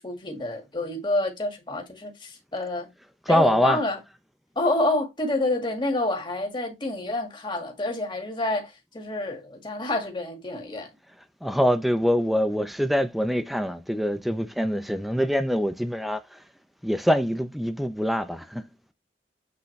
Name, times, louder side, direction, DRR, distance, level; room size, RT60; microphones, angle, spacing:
voice 1, 0.0-2.9 3.3-4.0 4.6-10.9, left 2 dB, 25° left, 2.0 m, -28 dB
voice 2, 3.3-3.8 11.4-16.4 16.8-18.6, equal, ahead, 0.6 m, -24 dB
8.4 x 3.8 x 3.2 m
head